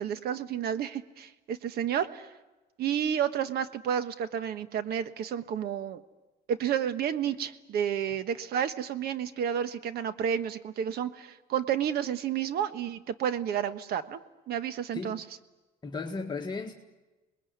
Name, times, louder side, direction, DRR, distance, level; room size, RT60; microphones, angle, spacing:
voice 1, 0.0-2.3 2.8-6.0 6.5-14.2 14.5-15.2, right 9 dB, 70° right, 11 dB, 1.4 m, -31 dB
voice 2, 15.8-16.7, left 4 dB, 25° left, 0 dB, 1.8 m, -35 dB
26.5 x 20.5 x 9.5 m, 1.1 s
cardioid pair, 110°, 17 cm